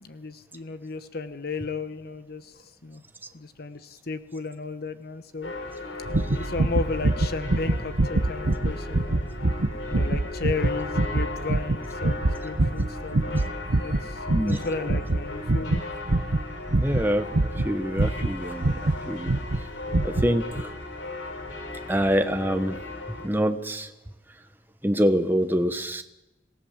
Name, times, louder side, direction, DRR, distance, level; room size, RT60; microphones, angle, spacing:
voice 1, 0.0-3.0 3.3-5.5 6.3-9.3 9.9-13.5 13.8-15.8, left 4 dB, 55° left, 11 dB, 1.0 m, -34 dB
sound 1, 5.4-23.3, left 2 dB, 70° left, 3.9 m, -37 dB
sound 2, 6.0-19.0 19.3-19.6 19.9-20.3 20.6-20.7, right 2 dB, 75° right, 1.0 m, -25 dB
voice 2, 16.7-19.3 20.0-20.7 21.9-22.8 23.1-23.9 24.8-26.0, equal, 10° right, 7 dB, 1.1 m, -25 dB
27.5 x 17.0 x 7.4 m, 1.0 s
head